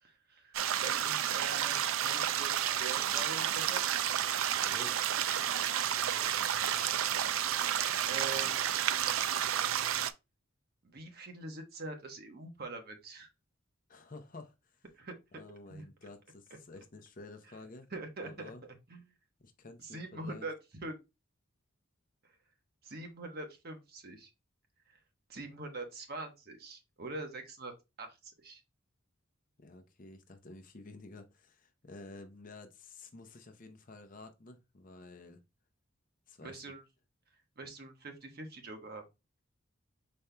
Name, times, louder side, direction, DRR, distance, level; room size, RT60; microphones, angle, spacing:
voice 1, 0.0-4.0 8.1-8.6 10.8-13.3 14.9-15.1 15.7-15.8 17.9-18.5 18.9-19.1 19.8-20.5 20.8-21.0 22.2-22.3 22.8-24.3 24.9-25.0 25.3-27.7 28.0-28.6 36.4-36.8 37.6-39.0, right 2 dB, 45° right, 1.1 m, -44 dB
sound 1, 0.5-10.1, right 10 dB, 75° right, 0.4 m, -31 dB
voice 2, 4.6-5.0 13.9-14.8 15.3-17.9 18.2-18.6 19.4-20.5 29.6-35.4 36.3-36.6, left 2 dB, 40° left, 0.6 m, -51 dB
5.2 x 4.3 x 2.2 m
head